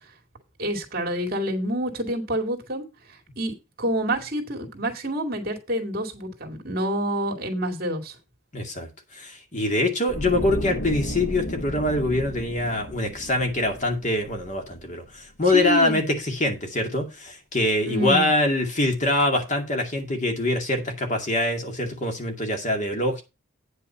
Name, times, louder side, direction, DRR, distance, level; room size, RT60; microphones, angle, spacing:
voice 1, 0.6-8.2 15.5-16.0 17.8-18.3, equal, 50° right, 2.3 m, -28 dB
voice 2, 8.5-23.2, left 1 dB, 35° left, 2.2 m, -24 dB
sound 1, 10.1-15.2 15.5-15.7, left 1 dB, 65° left, 1.0 m, -34 dB
9.3 x 5.8 x 5.5 m
head